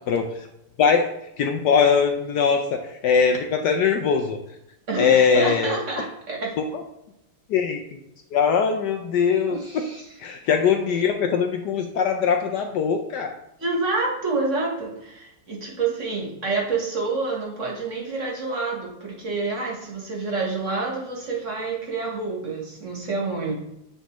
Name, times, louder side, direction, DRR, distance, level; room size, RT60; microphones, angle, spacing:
voice 1, 0.8-1.1 1.4-4.4 5.0-5.8 6.7-6.8 7.5-8.0 8.3-9.9 10.2-13.3, left 6 dB, 70° left, 4 dB, 1.0 m, -21 dB
voice 2, 4.9-6.5 9.5-10.0 13.6-23.5, right 3 dB, 45° right, -1 dB, 1.3 m, -28 dB
7.9 x 4.4 x 3.0 m, 0.86 s
omnidirectional pair, 2.1 m